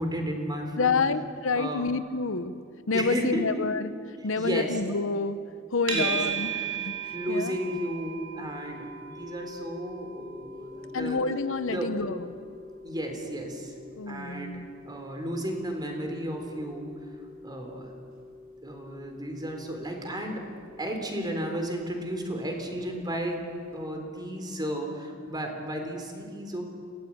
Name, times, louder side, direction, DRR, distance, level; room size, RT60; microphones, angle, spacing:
voice 1, 0.0-1.0 1.5-1.9 2.9-3.7 4.4-4.8 5.9-6.2 7.1-11.2 11.7-11.9 12.8-13.7 14.1-16.9 17.4-17.9 18.6-23.4 23.7-26.6, right 1 dB, 20° right, 3 dB, 3.8 m, -33 dB
voice 2, 0.8-2.6 2.9-3.9 4.2-5.4 5.7-6.9 7.3-7.5 10.9-12.3 14.0-14.7, left 4 dB, 70° left, 12 dB, 0.9 m, -28 dB
sound 1, 5.9-23.1, right 6 dB, 85° right, 5.4 m, -39 dB
26.5 x 18.0 x 8.7 m, 2.2 s
head